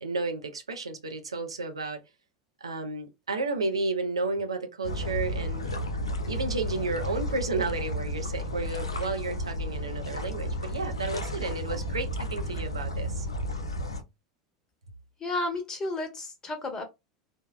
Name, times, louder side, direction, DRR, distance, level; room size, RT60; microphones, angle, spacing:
voice 1, 0.0-2.0 2.6-5.6 6.3-13.3, right 3 dB, 85° right, 0.5 m, -32 dB
sound 1, 4.8-14.0, equal, 85° left, 0.4 m, -32 dB
voice 2, 15.2-16.8, left 2 dB, 25° left, 1.0 m, -32 dB
3.3 x 2.0 x 2.2 m
figure-of-eight pair, 80°, 3 cm